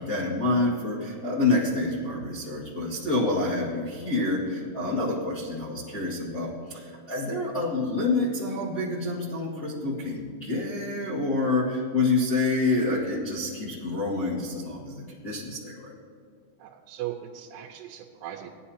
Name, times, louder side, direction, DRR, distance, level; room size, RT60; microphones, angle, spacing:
voice 1, 0.0-15.9, left 2 dB, 45° left, -9 dB, 1.2 m, -27 dB
voice 2, 16.6-18.5, right 12 dB, 90° right, 0 dB, 3.1 m, -38 dB
18.0 x 11.5 x 2.9 m, 2.2 s
omnidirectional pair, 5.4 m